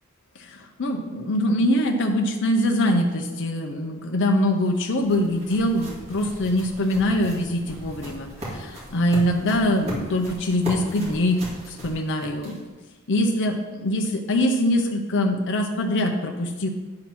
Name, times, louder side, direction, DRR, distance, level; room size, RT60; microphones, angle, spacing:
voice 1, 0.4-11.4 11.7-12.6 13.1-16.7, left 1 dB, 55° left, 3 dB, 0.7 m, -23 dB
sound 1, 4.3-12.8, right 1 dB, 30° right, 2.2 m, -38 dB
9.7 x 3.8 x 5.9 m, 1.3 s
head